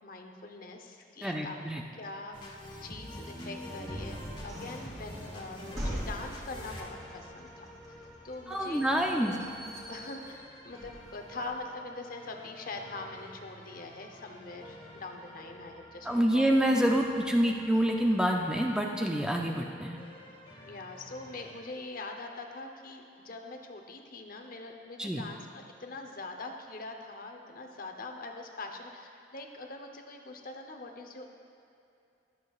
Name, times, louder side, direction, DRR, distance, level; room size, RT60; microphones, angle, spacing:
voice 1, 0.0-1.6 2.0-8.0 8.2-8.8 9.2-9.5 9.9-16.5 20.6-31.3, left 3 dB, 50° left, 4 dB, 0.8 m, -43 dB
voice 2, 1.2-1.8 8.5-9.4 16.1-20.0 25.0-25.2, equal, 5° right, 1 dB, 0.4 m, -27 dB
sound 1, 2.3-21.6, left 1 dB, 25° left, 1.2 m, -49 dB
sound 2, 2.8-11.5, equal, 20° right, 2.7 m, -42 dB
21.5 x 7.4 x 2.4 m, 2.6 s
head